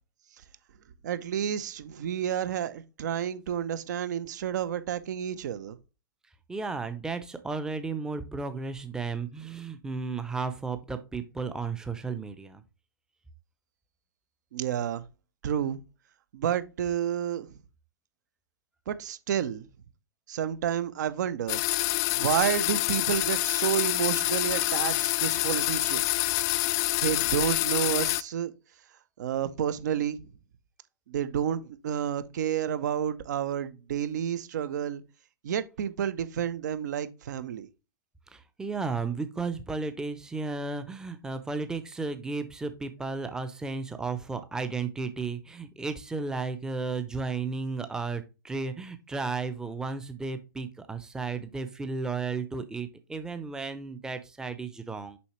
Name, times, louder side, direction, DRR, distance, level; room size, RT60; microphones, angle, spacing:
voice 1, 1.0-5.8 14.5-15.0 15.4-15.8 16.3-17.5 18.9-19.7 20.3-21.6 22.1-26.2 27.0-28.5 29.2-30.2 31.1-35.0 35.4-37.7, right 9 dB, 55° right, 0.8 m, -30 dB
voice 2, 6.5-12.6 38.3-55.2, right 4 dB, 5° right, 0.7 m, -34 dB
sound 1, 21.5-28.2, left 19 dB, 30° left, 0.4 m, -27 dB
7.0 x 5.5 x 3.1 m
figure-of-eight pair, 115°, 11 cm